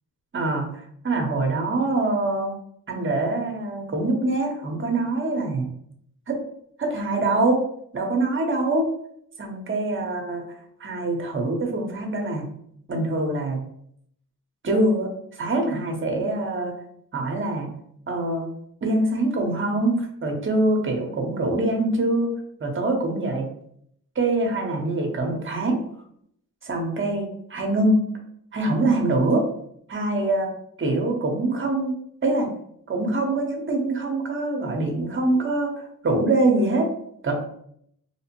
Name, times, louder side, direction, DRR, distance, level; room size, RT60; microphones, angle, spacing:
voice 1, 0.3-0.7 1.0-2.5 2.9-5.7 6.3-6.4 6.8-7.6 7.9-8.9 9.4-10.5 10.8-12.4 12.9-13.6 14.6-16.8 17.1-17.7 18.1-18.5 18.8-22.3 22.6-23.5 24.2-25.8 26.6-28.0 28.5-29.5 29.9-30.5 30.8-31.9 32.2-32.5 32.9-36.9 37.2-37.3, right 2 dB, 35° right, 2 dB, 0.7 m, -24 dB
2.8 x 2.0 x 2.9 m, 0.68 s
cardioid pair, 80°, 33 cm